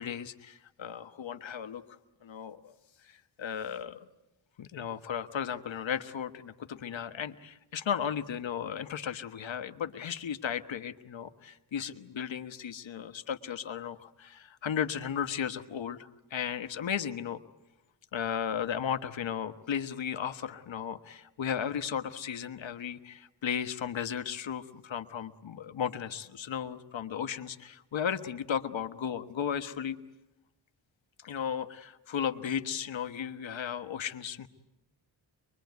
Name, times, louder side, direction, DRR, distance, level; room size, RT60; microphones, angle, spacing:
voice 1, 0.0-1.8 2.2-2.7 3.1-4.0 4.6-17.4 18.1-30.0 31.2-34.5, left 8 dB, 70° left, 10 dB, 1.4 m, -35 dB
24.0 x 23.5 x 9.5 m, 0.98 s
wide cardioid pair, 90°, 47 cm